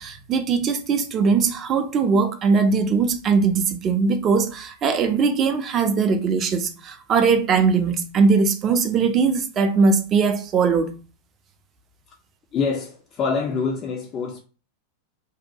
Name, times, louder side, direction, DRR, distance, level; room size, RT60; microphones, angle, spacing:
voice 1, 0.0-10.9, right 5 dB, 30° right, 0.4 m, -20 dB
voice 2, 12.5-14.4, left 5 dB, 30° left, 0.4 m, -25 dB
2.7 x 2.1 x 2.7 m
figure-of-eight pair, 90°, 0 cm